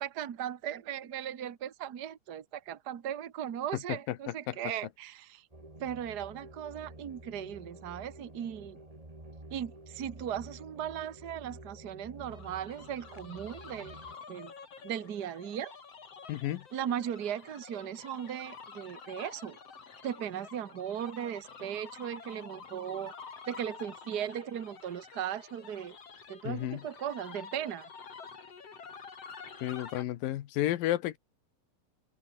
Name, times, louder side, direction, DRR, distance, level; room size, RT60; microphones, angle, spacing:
voice 1, 0.0-5.5 5.8-8.8 9.5-14.0 14.3-14.5 14.8-15.8 16.7-19.6 20.0-23.1 23.5-26.0 26.3-27.9, right 9 dB, 70° right, 0.9 m, -37 dB
voice 2, 4.1-4.6 16.3-16.6 26.4-26.8 29.6-31.2, left 14 dB, 85° left, 2.9 m, -32 dB
sound 1, 5.5-14.2, right 1 dB, 10° right, 3.1 m, -50 dB
sound 2, 12.3-30.0, left 5 dB, 45° left, 4.3 m, -49 dB
open air
omnidirectional pair, 3.9 m